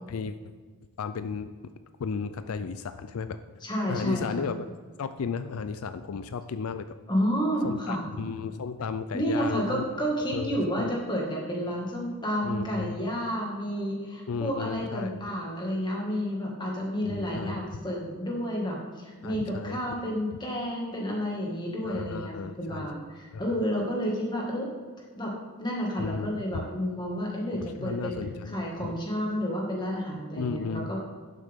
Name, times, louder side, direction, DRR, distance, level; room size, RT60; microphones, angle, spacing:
voice 1, 1.0-1.5 2.0-3.4 3.9-4.7 5.0-6.9 7.6-9.8 10.3-10.9 12.4-12.9 14.3-15.2 17.0-17.8 19.2-20.0 20.3-20.4 21.8-22.9 23.3-23.6 26.0-26.6 27.5-29.0 30.4-31.0, left 5 dB, 80° left, 11 dB, 0.4 m, -34 dB
voice 2, 3.6-4.5 7.1-8.0 9.1-24.7 25.2-25.3 25.6-28.2 28.5-31.0, equal, 20° left, -2 dB, 2.0 m, -30 dB
11.5 x 7.6 x 3.7 m, 1.5 s
head